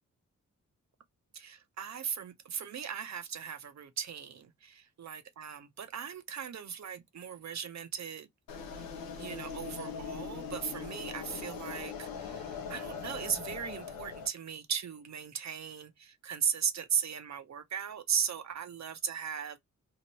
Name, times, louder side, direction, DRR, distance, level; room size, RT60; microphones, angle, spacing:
voice 1, 1.3-8.3 8.7-8.8 9.2-19.6, right 7 dB, 50° right, 0.7 m, -37 dB
sound 1, 8.5-14.3, left 6 dB, 85° left, 0.7 m, -41 dB
2.9 x 2.5 x 2.9 m
supercardioid pair, 40°, 34 cm